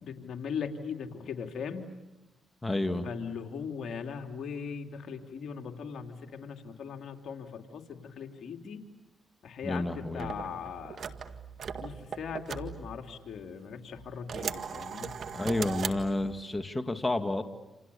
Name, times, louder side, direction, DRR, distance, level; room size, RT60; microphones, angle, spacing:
voice 1, 0.0-1.9 3.0-8.8 9.4-11.1 11.8-15.2, left 6 dB, 70° left, 5 dB, 3.0 m, -39 dB
voice 2, 2.6-3.0 9.6-10.3 15.3-17.4, left 2 dB, 20° left, 7 dB, 2.1 m, -30 dB
sound 1, 10.2-13.5 13.9-16.5, right 6 dB, 65° right, 1.9 m, -39 dB
28.5 x 28.5 x 7.0 m, 1.0 s
supercardioid pair, 55°, 0 cm